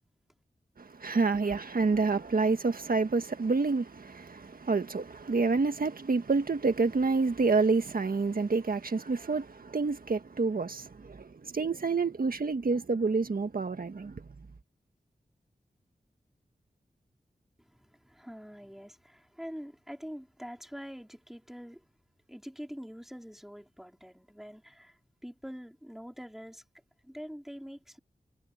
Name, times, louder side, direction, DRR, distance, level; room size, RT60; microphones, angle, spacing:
voice 1, 0.8-14.2, right 4 dB, 65° right, 1.7 m, -28 dB
voice 2, 17.6-21.9 22.3-26.6 27.0-28.0, equal, ahead, 4.4 m, -45 dB
wide cardioid pair, 85°, 16 cm